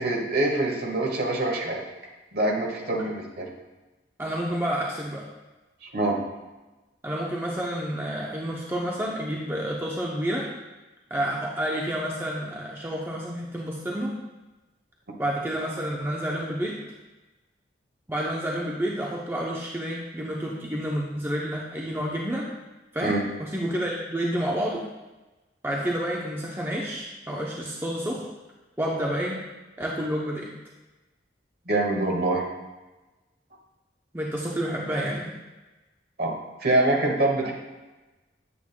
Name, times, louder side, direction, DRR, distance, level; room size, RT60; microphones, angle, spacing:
voice 1, 0.0-1.8 2.3-3.5 5.9-6.2 23.0-23.2 31.7-32.5 36.2-36.3 36.6-37.5, right 2 dB, 55° right, 0 dB, 1.5 m, -24 dB
voice 2, 4.2-5.2 7.0-10.5 11.1-14.1 15.2-16.8 18.1-22.5 22.9-24.9 25.6-28.3 28.8-29.4 29.8-30.5 34.1-35.3, equal, 10° right, -3 dB, 0.6 m, -29 dB
8.7 x 8.4 x 2.2 m, 1.1 s
head